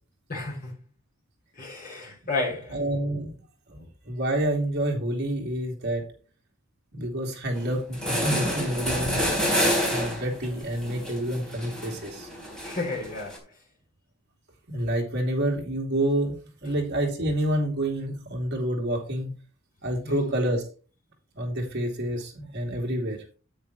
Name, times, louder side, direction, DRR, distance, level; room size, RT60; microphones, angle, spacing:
voice 1, 0.3-0.7 1.5-2.8 12.6-13.4 20.0-20.3, left 3 dB, 40° left, 5.3 m, -32 dB
voice 2, 2.7-3.3 3.7-6.0 6.9-9.5 9.8-12.3 14.7-16.3 16.6-19.3 19.8-20.6 21.3-23.2, right 1 dB, 50° right, 2.8 m, -28 dB
sound 1, 7.6-7.7 7.9-13.4, equal, 5° left, 3.4 m, -28 dB
sound 2, 8.7-9.6, right 1 dB, 80° right, 2.2 m, -38 dB
9.6 x 9.1 x 3.1 m
head